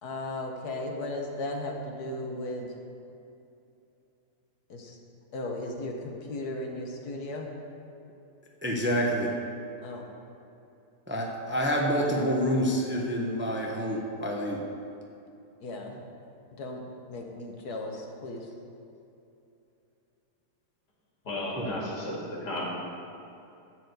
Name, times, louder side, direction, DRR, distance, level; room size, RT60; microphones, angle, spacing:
voice 1, 0.0-2.7 4.7-5.0 5.3-7.5 9.8-10.0 15.6-16.0 16.6-16.8 17.1-18.4, left 2 dB, 70° left, 1 dB, 1.8 m, -36 dB
voice 2, 8.6-9.3 11.1-14.6 21.6-21.7, equal, 10° right, -1 dB, 0.7 m, -27 dB
voice 3, 21.2-22.6, left 1 dB, 90° left, -4 dB, 2.9 m, -34 dB
13.0 x 4.7 x 8.0 m, 2.8 s
omnidirectional pair, 1.7 m